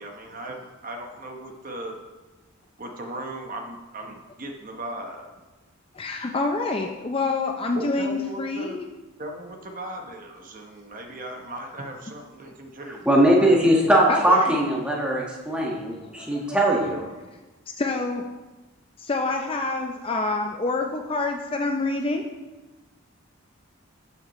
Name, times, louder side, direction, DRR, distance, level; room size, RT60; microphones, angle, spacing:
voice 1, 0.0-2.0 2.8-5.3 7.7-8.8 9.2-13.1, right 1 dB, 40° right, 2 dB, 1.0 m, -37 dB
voice 2, 5.9-8.9 14.1-14.6 15.9-16.9 17.8-18.2 19.0-22.2, left 3 dB, 25° left, 3 dB, 0.5 m, -27 dB
voice 3, 13.0-17.1, right 1 dB, 5° right, -3 dB, 1.4 m, -20 dB
12.5 x 7.3 x 3.1 m, 1.2 s
head